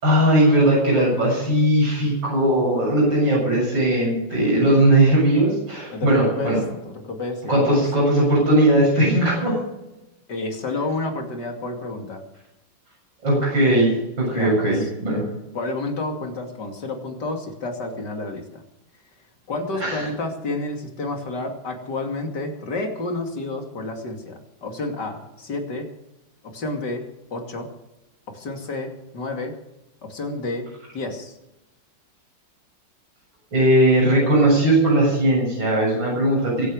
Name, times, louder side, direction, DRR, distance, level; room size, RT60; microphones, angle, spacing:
voice 1, 0.0-6.6 7.5-9.6 13.2-15.2 19.8-20.1 33.5-36.7, right 1 dB, 80° right, -3 dB, 8.1 m, -18 dB
voice 2, 5.9-6.5 6.8-7.8 10.3-12.2 14.3-14.9 15.5-18.6 19.5-25.9 26.5-27.0 27.3-27.7 28.3-29.5 30.0-30.7 30.9-31.3, left 2 dB, 65° left, 3 dB, 3.2 m, -30 dB
24.0 x 8.6 x 6.5 m, 0.96 s
omnidirectional pair, 2.0 m